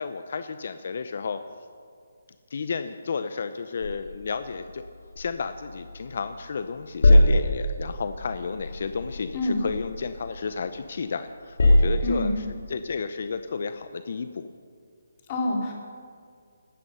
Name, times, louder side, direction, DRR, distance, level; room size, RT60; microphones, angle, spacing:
voice 1, 0.0-1.4 2.5-4.8 5.2-14.5, left 5 dB, 50° left, 10 dB, 0.6 m, -32 dB
sound 1, 3.8-6.4 6.6-10.9 11.3-12.5, left 1 dB, 70° left, 3.2 m, -24 dB
voice 2, 12.0-12.4 15.3-15.7, left 2 dB, 25° left, -1 dB, 2.8 m, -26 dB
17.0 x 13.0 x 5.6 m, 2.2 s
hypercardioid pair, 170°, 0 cm